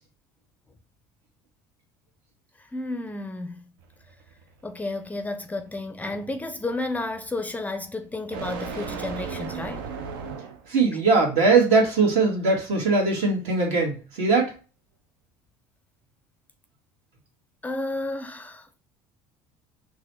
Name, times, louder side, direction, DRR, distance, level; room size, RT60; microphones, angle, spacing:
voice 1, 2.6-3.7 4.6-9.9 17.6-18.7, left 2 dB, 15° left, 0.4 m, -32 dB
sound 1, 3.8-10.8, right 5 dB, 85° right, 0.6 m, -38 dB
voice 2, 10.7-14.5, right 4 dB, 65° right, 1.7 m, -21 dB
3.9 x 2.4 x 3.1 m
supercardioid pair, 95°, 12 cm